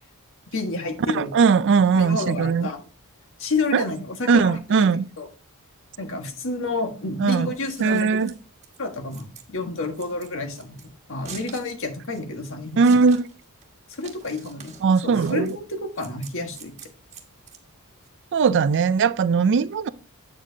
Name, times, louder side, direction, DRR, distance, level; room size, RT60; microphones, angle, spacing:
voice 1, 0.5-1.3 1.9-2.8 3.4-5.3 6.0-8.2 8.8-10.8 11.1-13.0 14.0-14.7 15.0-16.7 18.5-18.6, left 2 dB, 60° left, 1.5 m, -30 dB
voice 2, 1.1-2.7 3.7-3.8 4.3-5.1 7.2-7.5 7.8-8.3 12.8-13.3 14.8-15.6 18.3-19.9, right 5 dB, 55° right, 0.4 m, -19 dB
Scissors, 7.5-18.1, right 6 dB, 30° right, 1.4 m, -46 dB
8.8 x 7.4 x 2.8 m
head